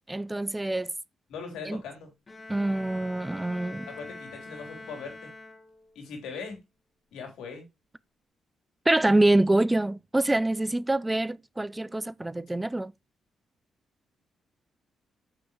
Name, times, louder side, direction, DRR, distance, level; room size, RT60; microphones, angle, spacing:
voice 1, 0.1-0.9 1.7-1.8 2.5-3.9 8.9-12.9, right 2 dB, 15° right, 0.3 m, -25 dB
voice 2, 1.3-2.1 3.8-5.3 5.9-6.6 7.1-7.7, left 5 dB, 85° left, 3.4 m, -40 dB
Bowed string instrument, 2.3-6.0, left 2 dB, 30° left, 1.6 m, -44 dB
7.6 x 6.7 x 2.9 m
cardioid pair, 80°, 0 cm